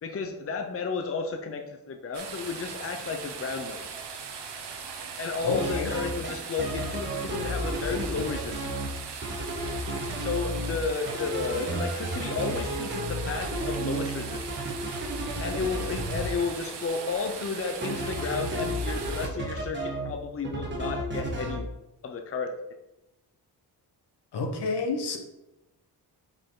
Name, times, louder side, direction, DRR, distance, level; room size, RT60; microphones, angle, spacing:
voice 1, 0.0-3.8 5.2-8.7 10.2-14.4 15.4-21.7 22.0-22.5, left 4 dB, 35° left, 5 dB, 0.6 m, -32 dB
sound 1, 2.1-19.3, right 6 dB, 85° right, 1.0 m, -40 dB
voice 2, 5.4-5.9 15.8-15.9 24.3-25.2, left 3 dB, 75° left, 4 dB, 1.2 m, -29 dB
sound 2, 5.4-6.3 6.6-8.9 9.2-10.8 11.1-16.2 17.8-20.1 20.4-21.6, right 1 dB, 25° right, 1.3 m, -32 dB
6.4 x 5.3 x 3.8 m, 0.93 s
wide cardioid pair, 150°, 40 cm